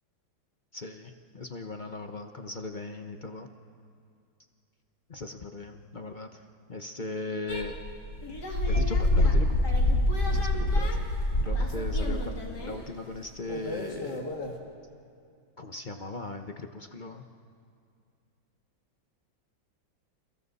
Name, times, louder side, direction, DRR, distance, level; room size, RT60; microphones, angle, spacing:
voice 1, 0.7-3.5 5.1-6.3 6.7-7.8 8.7-11.0 11.4-14.2 15.6-17.2, left 2 dB, 40° left, 5 dB, 0.7 m, -38 dB
sound 1, 7.5-12.7 13.5-14.5, left 1 dB, 55° left, 3.0 m, -26 dB
29.5 x 29.0 x 4.2 m, 2.3 s
omnidirectional pair, 2.1 m